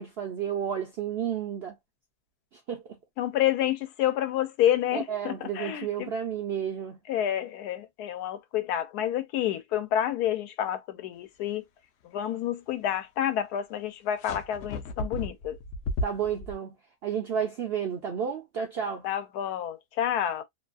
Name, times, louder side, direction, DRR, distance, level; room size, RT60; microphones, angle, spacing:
voice 1, 0.0-1.8 2.7-2.8 4.9-7.0 16.0-16.8 17.0-19.1, right 8 dB, 70° right, 0.6 m, -31 dB
voice 2, 3.2-6.1 7.1-11.7 12.0-15.6 19.0-20.4, left 11 dB, 85° left, 1.1 m, -29 dB
sound 1, 14.2-16.5, left 1 dB, 65° left, 0.8 m, -34 dB
2.8 x 2.3 x 2.4 m
omnidirectional pair, 1.6 m